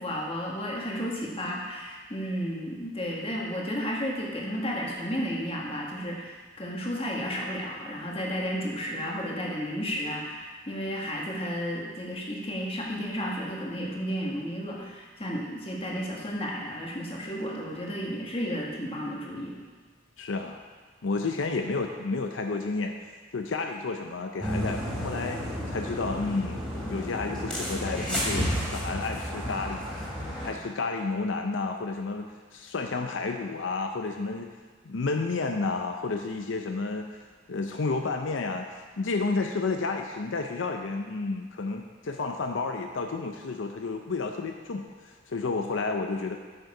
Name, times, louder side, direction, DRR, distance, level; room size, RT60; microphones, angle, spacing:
voice 1, 0.0-19.6, equal, 30° left, -2 dB, 1.5 m, -33 dB
voice 2, 20.2-20.6 21.0-23.0 23.3-29.8 30.4-32.2 32.5-34.5 34.8-46.4, left 3 dB, 80° left, 4 dB, 0.6 m, -31 dB
sound 1, 24.4-30.5, equal, 5° left, 2.6 m, -32 dB
8.9 x 6.6 x 4.9 m, 1.5 s
head